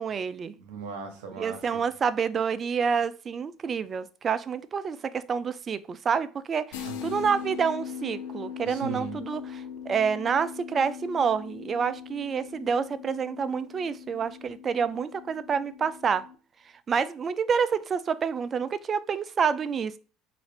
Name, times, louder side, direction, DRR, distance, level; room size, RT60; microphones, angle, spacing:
voice 1, 0.0-0.5 1.4-16.3 16.9-20.0, right 6 dB, 40° right, 0.3 m, -28 dB
voice 2, 0.6-1.8 6.8-7.2 8.6-9.2, right 5 dB, 85° right, 0.9 m, -38 dB
sound 1, 6.7-16.3, left 8 dB, 85° left, 0.5 m, -40 dB
3.8 x 2.6 x 3.2 m
supercardioid pair, 85°, 0 cm